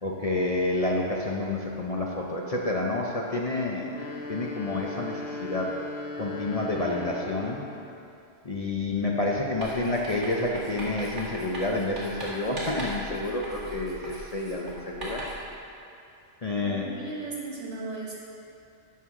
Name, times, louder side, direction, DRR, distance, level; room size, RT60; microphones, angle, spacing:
voice 1, 0.0-4.0 4.3-5.7 6.2-7.6 8.4-15.2 16.4-16.9, left 2 dB, 40° left, -2 dB, 0.7 m, -29 dB
sound 1, 3.8-7.9, left 2 dB, 65° left, 1.0 m, -37 dB
Writing, 9.6-15.5, right 1 dB, 90° right, 2.5 m, -39 dB
voice 2, 16.6-18.2, right 3 dB, 70° right, -4 dB, 2.0 m, -36 dB
13.0 x 6.3 x 3.7 m, 2.7 s
omnidirectional pair, 1.2 m